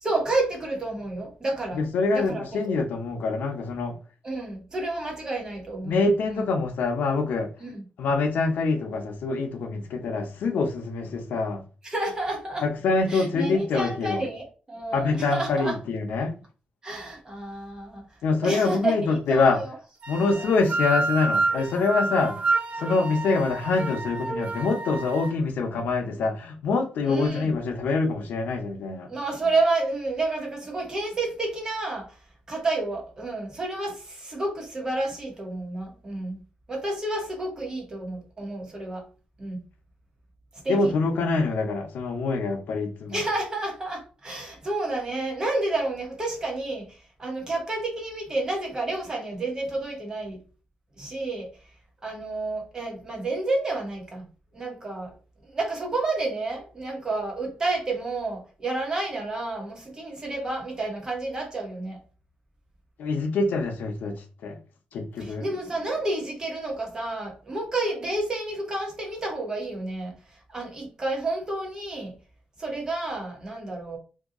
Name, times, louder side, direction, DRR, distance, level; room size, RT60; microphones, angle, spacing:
voice 1, 0.0-1.8 2.1-2.5 4.2-6.5 7.6-7.8 11.8-12.6 13.1-15.7 16.8-18.0 18.4-19.7 20.4-20.6 27.0-27.6 29.1-32.2 32.5-36.4 36.7-39.0 39.4-39.6 40.6-40.9 43.1-50.4 51.0-51.5 52.0-54.3 54.5-55.1 55.5-62.0 65.2-70.1 70.5-72.1 72.6-74.0, right 2 dB, 25° right, 1.0 m, -30 dB
voice 2, 1.7-4.0 5.9-7.5 8.0-11.6 12.6-14.2 14.9-16.3 18.2-19.6 20.1-29.1 40.7-43.2 63.0-64.6 64.9-65.4, left 3 dB, 85° left, 0.6 m, -25 dB
sound 1, 20.0-25.3, right 3 dB, 45° right, 0.4 m, -28 dB
2.8 x 2.3 x 3.6 m
wide cardioid pair, 160°, 3 cm